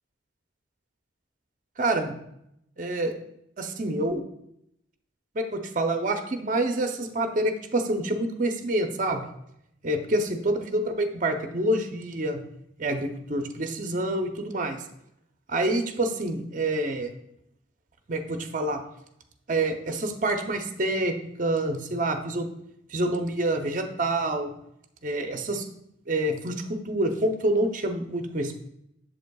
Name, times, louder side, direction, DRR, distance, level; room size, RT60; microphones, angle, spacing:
voice 1, 1.8-2.2 2.8-3.1 3.6-4.2 5.3-9.2 9.8-12.4 12.8-14.8 15.5-17.1 18.1-18.8 19.5-22.5 22.9-24.5 25.0-25.6 26.1-28.5, right 1 dB, 40° right, 5 dB, 0.6 m, -27 dB
8.0 x 7.2 x 2.3 m, 0.77 s
head